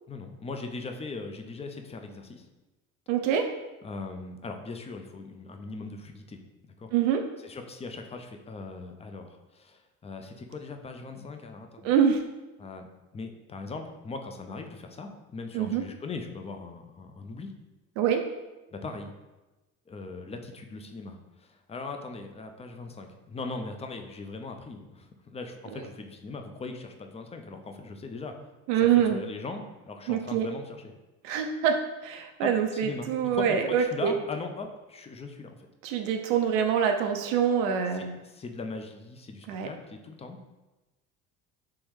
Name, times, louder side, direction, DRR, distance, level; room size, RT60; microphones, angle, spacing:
voice 1, 0.1-2.5 3.8-6.4 6.8-6.9 7.4-12.0 12.6-12.9 13.1-17.5 18.7-19.1 19.9-28.3 28.7-30.8 32.4-35.5 37.9-40.4, left 3 dB, 15° left, 5 dB, 0.4 m, -40 dB
voice 2, 3.1-3.5 6.9-7.2 11.8-12.2 15.5-15.8 18.0-18.2 25.7-25.9 28.7-29.2 30.1-30.5 31.2-31.7 32.0-34.1 35.8-38.1 39.5-39.7, right 8 dB, 75° right, 4 dB, 0.5 m, -25 dB
3.5 x 3.0 x 3.1 m, 1.1 s
hypercardioid pair, 65°, 39 cm